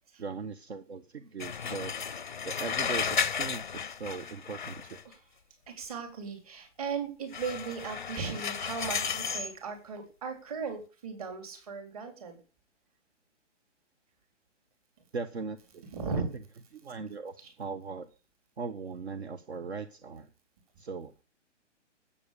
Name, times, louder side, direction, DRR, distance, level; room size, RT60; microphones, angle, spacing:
voice 1, 0.2-2.2 2.4-5.0 15.1-15.8 16.7-18.1 18.6-20.3 20.8-21.2, right 4 dB, 60° right, 11 dB, 1.3 m, -39 dB
sound 1, 1.4-5.1 7.3-9.5, left 6 dB, 40° left, 0.5 m, -33 dB
voice 2, 5.7-12.4 15.9-16.3 17.4-17.5, right 5 dB, 30° right, 5 dB, 4.0 m, -37 dB
12.5 x 8.7 x 6.8 m, 0.36 s
hypercardioid pair, 175°, 37 cm